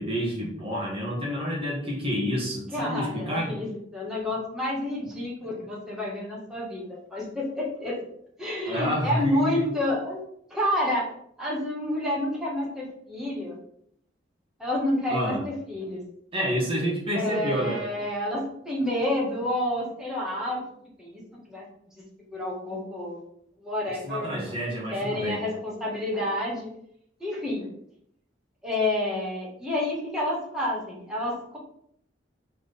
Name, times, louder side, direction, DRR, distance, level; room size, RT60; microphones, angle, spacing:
voice 1, 0.0-3.6 8.7-9.6 15.1-15.4 16.3-17.8 24.0-25.4, equal, 30° right, -4 dB, 1.5 m, -29 dB
voice 2, 2.7-8.0 8.4-10.2 10.5-11.1 11.4-13.5 14.6-16.0 17.1-20.6 21.0-21.2 21.5-21.6 22.3-23.2 23.6-24.4 24.9-26.7 27.2-27.7 28.6-31.6, left 1 dB, 5° right, -5 dB, 1.8 m, -29 dB
4.6 x 4.1 x 5.4 m, 0.69 s
head